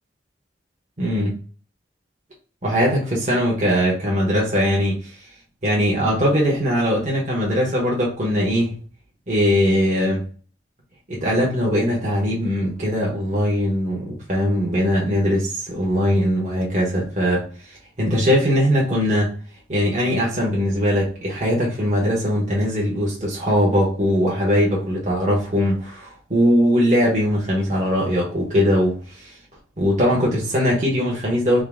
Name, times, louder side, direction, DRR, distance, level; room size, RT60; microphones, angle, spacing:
voice 1, 1.0-1.4 2.6-5.0 5.6-8.8 9.3-10.2 11.1-19.3 19.7-29.4 29.8-31.6, equal, 40° right, -4 dB, 1.2 m, -20 dB
3.8 x 2.7 x 3.6 m, 0.40 s
head